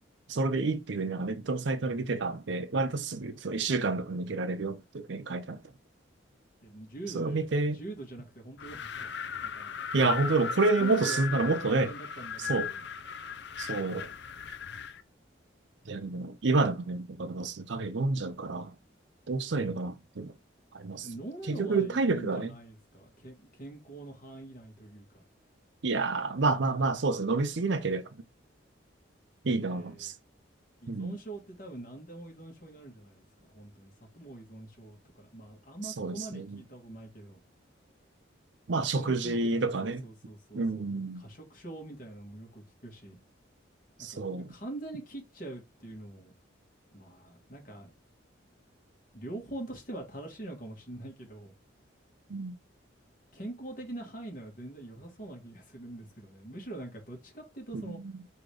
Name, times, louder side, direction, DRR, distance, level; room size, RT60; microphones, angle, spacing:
voice 1, 0.3-5.6 7.1-7.8 9.9-11.9 12.5-12.7 13.6-14.1 15.9-18.7 19.3-20.3 20.7-21.1 21.5-22.5 25.8-28.1 29.4-30.1 30.9-31.1 36.0-36.6 38.7-40.0 40.5-41.2 44.0-44.5 52.3-52.6 57.7-58.2, right 3 dB, 70° right, 0.6 m, -29 dB
voice 2, 6.6-7.5 7.7-9.8 10.5-12.8 21.0-25.2 29.6-30.1 30.8-37.4 38.7-40.9 41.1-43.2 44.0-46.3 46.9-47.9 49.1-51.5 53.3-58.0, right 2 dB, 45° left, 1.7 m, -44 dB
Wind, 8.6-15.0, left 6 dB, 60° left, 0.5 m, -37 dB
3.8 x 2.9 x 4.8 m
head